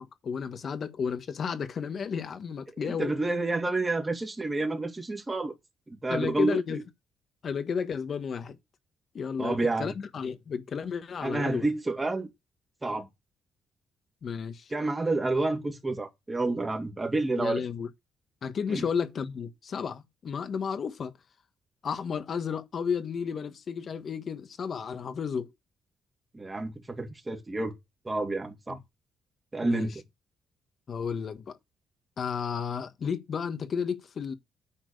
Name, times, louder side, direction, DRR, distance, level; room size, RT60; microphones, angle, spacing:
voice 1, 0.0-3.1 6.1-6.8 7.4-8.6 9.1-11.7 14.2-14.7 17.4-17.9 18.4-21.1 21.8-25.5 28.7-28.8 29.6-29.9 30.9-31.6 32.2-34.3, left 6 dB, 50° left, 1.4 m, -32 dB
voice 2, 2.8-5.5 5.9-6.6 9.4-9.9 11.2-12.3 12.8-13.1 14.7-17.6 18.7-18.8 26.3-27.7 28.0-28.8 29.5-30.0, right 2 dB, 20° right, 2.5 m, -29 dB
10.0 x 4.6 x 6.6 m
cardioid pair, 90°, 0 cm